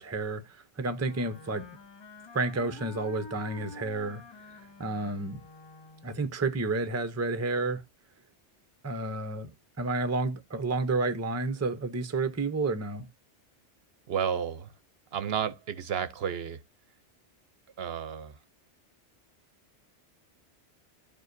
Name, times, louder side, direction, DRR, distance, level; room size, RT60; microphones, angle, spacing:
voice 1, 0.0-1.7 2.3-4.2 4.8-5.4 6.0-7.8 8.8-9.5 9.8-13.1, right 3 dB, 15° right, 0.6 m, -30 dB
Wind instrument woodwind instrument, 0.9-6.3, left 3 dB, 40° left, 0.3 m, -48 dB
voice 2, 14.1-14.7 15.1-16.6 17.8-18.4, right 8 dB, 65° right, 0.8 m, -32 dB
12.5 x 4.8 x 2.6 m
omnidirectional pair, 1.2 m